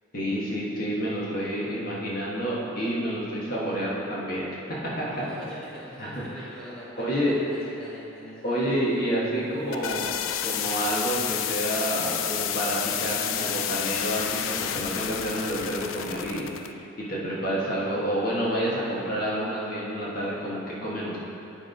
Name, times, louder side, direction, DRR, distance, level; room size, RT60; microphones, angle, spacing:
voice 1, 0.1-5.3 6.0-6.2 7.0-7.3 8.4-10.1 10.4-21.2, equal, 50° left, -6 dB, 1.4 m, -29 dB
voice 2, 5.1-9.1, equal, 5° left, -9 dB, 1.2 m, -43 dB
sound 1, 9.4-16.7, left 10 dB, 80° left, 0.3 m, -30 dB
10.0 x 3.5 x 5.2 m, 2.8 s
head